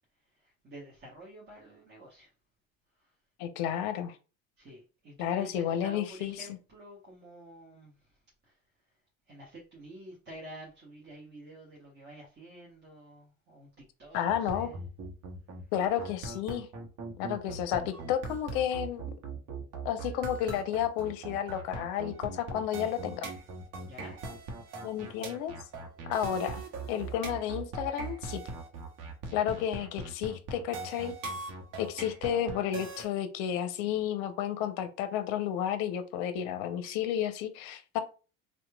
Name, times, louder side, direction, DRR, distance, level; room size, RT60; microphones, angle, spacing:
voice 1, 0.4-2.3 4.6-7.9 8.5-8.6 9.3-14.8 23.8-24.2, right 1 dB, 25° right, -3 dB, 1.0 m, -49 dB
voice 2, 3.4-4.2 5.2-6.5 14.1-14.7 15.7-16.7 17.2-19.2 19.8-23.3 24.8-25.5 26.1-26.6 26.9-28.4 29.3-31.1 31.8-38.0, left 10 dB, 60° left, 10 dB, 0.6 m, -32 dB
sound 1, 14.3-33.1, right 3 dB, 50° right, 0.9 m, -40 dB
2.9 x 2.2 x 2.2 m, 0.34 s
hypercardioid pair, 80°, 42 cm